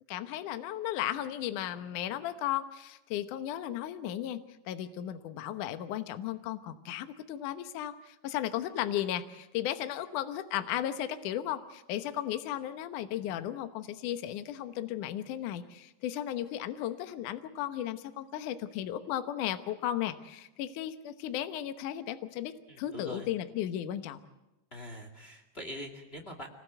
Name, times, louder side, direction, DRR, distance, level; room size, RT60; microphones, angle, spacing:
voice 1, 0.1-4.4 4.7-24.2, left 11 dB, 70° left, 9 dB, 2.1 m, -35 dB
voice 2, 22.7-23.3 24.7-26.5, left 1 dB, 30° left, 3 dB, 1.2 m, -43 dB
26.0 x 19.5 x 8.0 m, 0.98 s
omnidirectional pair, 4.9 m